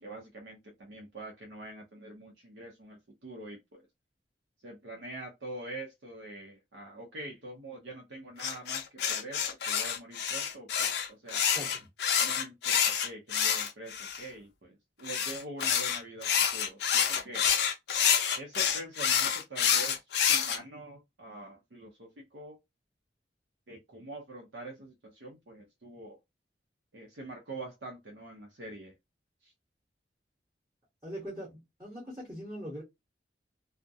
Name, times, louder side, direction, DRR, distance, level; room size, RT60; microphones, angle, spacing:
voice 1, 0.0-3.9 4.6-11.5 12.2-17.5 18.3-22.6 23.7-26.2 26.9-28.9 29.4-29.5, right 2 dB, 75° right, 0.6 m, -45 dB
sound 1, 8.4-14.2 15.0-20.6, left 8 dB, 65° left, 0.4 m, -28 dB
voice 2, 11.5-11.8 31.0-32.8, equal, 20° right, 0.9 m, -41 dB
2.3 x 2.1 x 2.6 m
head